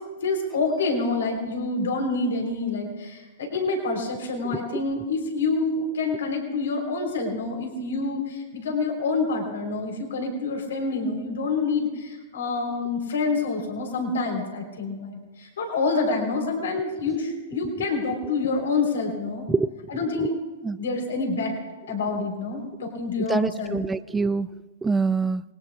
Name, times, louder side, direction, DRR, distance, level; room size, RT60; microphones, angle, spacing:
voice 1, 0.2-19.4 19.9-20.3 20.8-21.5 21.9-23.8, left 3 dB, 80° left, 2 dB, 3.9 m, -27 dB
voice 2, 23.3-24.5 24.8-25.4, right 4 dB, 10° right, 15 dB, 0.5 m, -24 dB
27.0 x 19.5 x 2.4 m, 1.2 s
hypercardioid pair, 130°, 0 cm